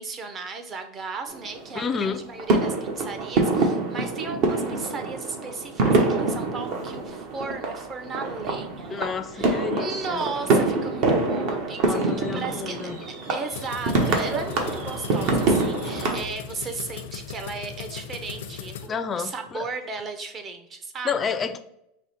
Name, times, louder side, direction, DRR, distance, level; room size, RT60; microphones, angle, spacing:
voice 1, 0.0-9.0 9.3-12.9 13.3-21.3, right 4 dB, 30° right, 6 dB, 0.6 m, -35 dB
sound 1, 1.3-2.0 2.4-16.2, right 3 dB, 55° right, 0.9 m, -25 dB
voice 2, 1.7-2.2 8.9-10.2 11.8-13.0 18.9-19.7 21.0-21.6, left 6 dB, 25° left, 10 dB, 0.4 m, -30 dB
sound 2, 13.5-18.9, left 7 dB, 85° left, 0.5 m, -38 dB
4.8 x 2.1 x 4.2 m, 0.81 s
supercardioid pair, 130°, 0 cm